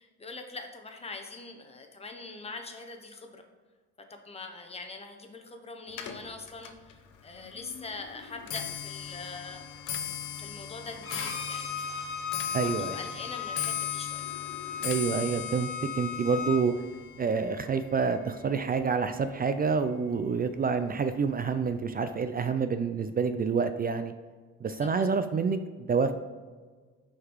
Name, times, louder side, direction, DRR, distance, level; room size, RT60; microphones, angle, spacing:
voice 1, 0.0-3.4 4.1-9.6 10.4-12.1 12.5-14.3 24.6-24.9, left 3 dB, 20° left, 4 dB, 0.9 m, -43 dB
Clock, 5.9-19.2 19.6-20.0 20.8-20.9 21.3-21.6 21.9-22.0, left 9 dB, 85° left, 0.7 m, -39 dB
Bowed string instrument, 11.0-16.6, left 8 dB, 45° left, 1.4 m, -36 dB
voice 2, 12.5-13.0 14.8-16.7 17.2-24.1 24.6-26.1, right 5 dB, 30° right, 10 dB, 0.4 m, -28 dB
6.2 x 3.9 x 4.6 m, 1.5 s
cardioid pair, 90°, 30 cm